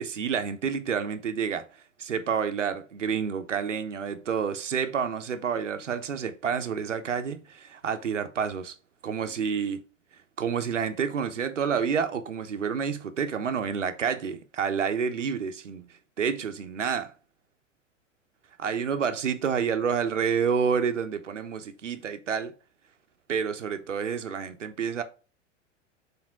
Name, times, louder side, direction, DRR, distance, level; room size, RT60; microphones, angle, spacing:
voice 1, 0.0-1.6 2.0-8.7 9.0-9.8 10.4-15.9 16.2-17.1 18.6-22.5 23.3-25.0, right 6 dB, 75° right, 1.1 m, -29 dB
7.3 x 3.7 x 3.7 m
figure-of-eight pair, 95°, 37 cm